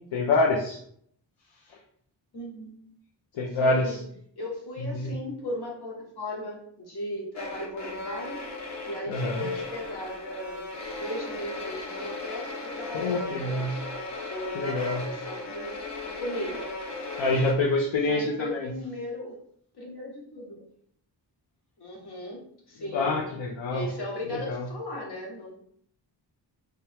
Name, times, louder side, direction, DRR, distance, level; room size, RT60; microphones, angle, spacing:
voice 1, 0.1-0.8 3.4-4.0 4.9-5.1 9.1-9.5 12.9-13.7 14.6-15.0 17.2-18.7 22.9-23.9 24.5-24.6, left 2 dB, 85° left, -2 dB, 0.7 m, -26 dB
voice 2, 2.3-2.9 3.5-4.0 4.4-8.4 8.8-10.7 10.9-13.8 14.3-15.8 16.0-16.7 18.0-19.4 19.7-20.6 21.8-23.2 23.7-25.6, left 1 dB, 60° left, -2 dB, 1.3 m, -37 dB
sound 1, 7.3-17.5, left 2 dB, 40° left, 0.6 m, -37 dB
3.5 x 2.8 x 3.4 m, 0.64 s
wide cardioid pair, 165°, 44 cm